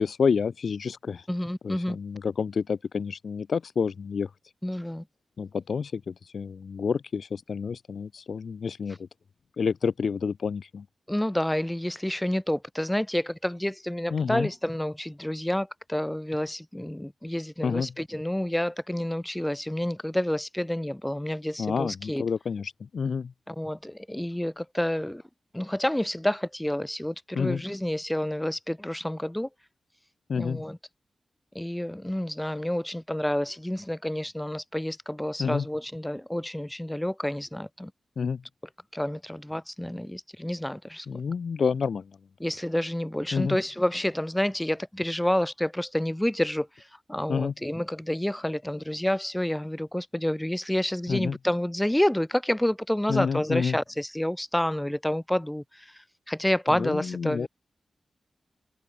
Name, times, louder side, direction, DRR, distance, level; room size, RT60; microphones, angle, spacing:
voice 1, 0.0-1.2 1.6-4.3 5.4-9.1 9.6-10.9 14.1-14.5 17.6-17.9 21.6-23.3 27.4-27.6 30.3-30.6 35.4-35.7 38.2-38.4 41.1-42.1 43.3-43.6 47.3-47.5 51.1-51.4 53.1-53.8 56.7-57.5, left 6 dB, 70° left, 0.3 m, -29 dB
voice 2, 1.3-2.0 4.6-5.0 11.1-22.2 23.5-25.2 25.5-29.5 30.4-30.8 31.5-37.9 38.9-41.1 42.4-57.5, left 1 dB, 10° left, 0.7 m, -29 dB
cardioid pair, 65°, 0 cm